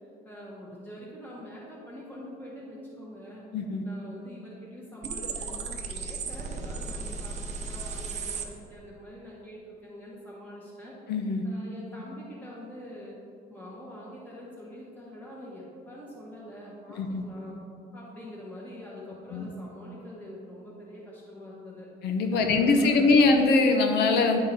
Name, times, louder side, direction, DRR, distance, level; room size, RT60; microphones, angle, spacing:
voice 1, 0.2-3.4 3.8-11.0 11.4-13.2 13.5-17.6 17.9-21.9 22.3-23.4, left 1 dB, 10° left, -7 dB, 1.5 m, -44 dB
voice 2, 3.5-3.8 11.1-11.4 16.9-17.2 19.3-19.5 22.0-24.4, left 3 dB, 75° left, 5 dB, 0.9 m, -22 dB
sound 1, 5.0-8.5, right 4 dB, 45° right, 0.7 m, -35 dB
9.9 x 3.8 x 4.2 m, 2.4 s
cardioid pair, 110°, 17 cm